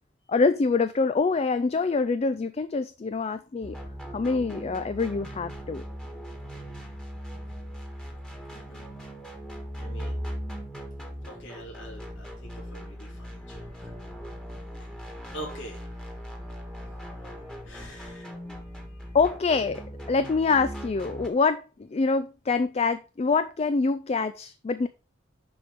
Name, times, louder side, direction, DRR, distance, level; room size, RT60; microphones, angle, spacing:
voice 1, 0.3-3.8 4.1-5.8 19.1-24.9, left 4 dB, 35° left, 0.4 m, -25 dB
sound 1, 3.6-21.3, equal, 5° left, 1.5 m, -39 dB
voice 2, 8.5-8.9 9.8-10.3 11.2-13.9 14.8-19.2, right 1 dB, 90° left, 3.3 m, -46 dB
7.0 x 5.2 x 5.0 m
head